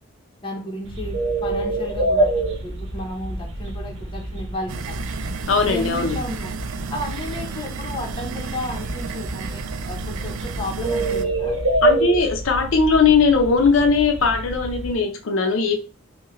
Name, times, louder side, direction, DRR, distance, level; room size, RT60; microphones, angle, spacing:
voice 1, 0.4-5.0 5.7-6.6 6.9-11.6, left 1 dB, 25° left, 1 dB, 0.8 m, -33 dB
sound 1, 0.8-14.9, right 1 dB, 60° right, 0.9 m, -27 dB
sound 2, 4.7-11.3, right 6 dB, 80° right, 0.4 m, -33 dB
voice 2, 5.5-6.2 11.8-15.7, left 4 dB, 70° left, 4 dB, 0.5 m, -19 dB
4.6 x 2.2 x 3.1 m, 0.35 s
head